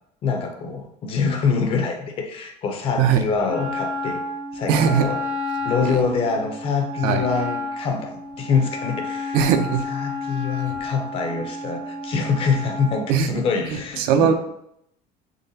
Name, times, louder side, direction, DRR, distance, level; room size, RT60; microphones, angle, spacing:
voice 1, 0.2-4.2 4.5-5.2 5.6-9.4 9.8-14.3, left 5 dB, 35° left, 4 dB, 0.5 m, -25 dB
Wind instrument woodwind instrument, 3.5-13.1, left 2 dB, 85° right, 0.9 m, -31 dB
voice 2, 4.7-5.1 5.8-6.0 7.0-7.3 9.3-9.8 13.1-13.3 13.7-14.3, right 7 dB, 70° right, 8 dB, 0.5 m, -20 dB
3.8 x 3.2 x 2.7 m, 0.75 s
cardioid pair, 165°, 16 cm